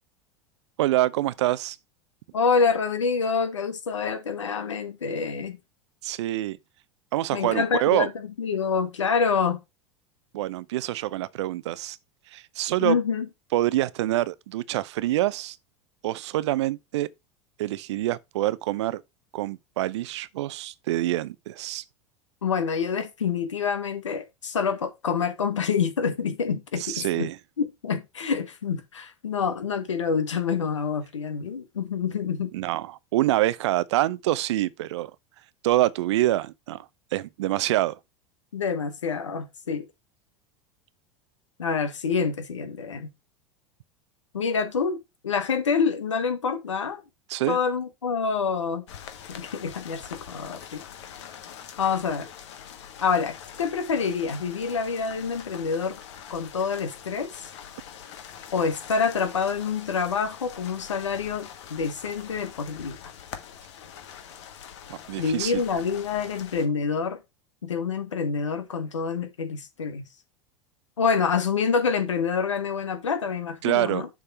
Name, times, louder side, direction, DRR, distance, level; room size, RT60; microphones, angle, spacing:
voice 1, 0.8-1.8 6.0-6.6 7.1-8.1 10.3-12.0 12.3-13.0 13.5-15.6 16.0-17.1 17.6-19.0 19.3-21.8 26.8-27.4 32.5-35.1 35.6-38.0 47.3-47.6 64.9-65.6 73.6-74.1, right 15 dB, 65° right, 0.5 m, -26 dB
voice 2, 2.3-5.6 7.3-8.1 8.4-9.6 12.8-13.3 22.4-27.3 27.6-32.5 38.5-39.9 41.6-43.1 44.3-45.0 45.2-47.0 47.5-48.8 49.3-50.8 51.8-52.3 53.0-56.0 56.3-57.5 58.5-63.0 65.2-67.2 67.6-70.0 71.0-74.1, left 5 dB, 80° left, 1.3 m, -27 dB
sound 1, 48.9-66.7, left 8 dB, 65° left, 1.3 m, -44 dB
7.0 x 3.6 x 5.4 m
hypercardioid pair, 85°, 16 cm